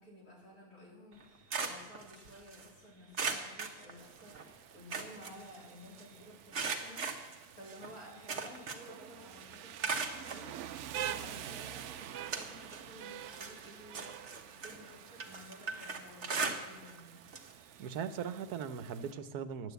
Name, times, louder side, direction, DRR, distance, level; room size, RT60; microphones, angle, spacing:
voice 1, 0.0-17.3, left 1 dB, 80° left, -4 dB, 4.4 m, -54 dB
sound 1, 1.1-2.7 3.1-4.4 4.7-6.0 6.5-9.0 9.3-10.5 11.2-11.3 11.8-12.9 13.2-17.0 17.3-17.5 17.9-18.0 19.2-19.3, right 4 dB, 50° right, 1.4 m, -39 dB
Rain, 4.0-19.1, right 10 dB, 65° right, 0.7 m, -47 dB
voice 2, 17.8-19.7, right 7 dB, 85° right, 12 dB, 1.3 m, -39 dB
10.5 x 9.0 x 8.0 m, 1.1 s
omnidirectional pair, 1.6 m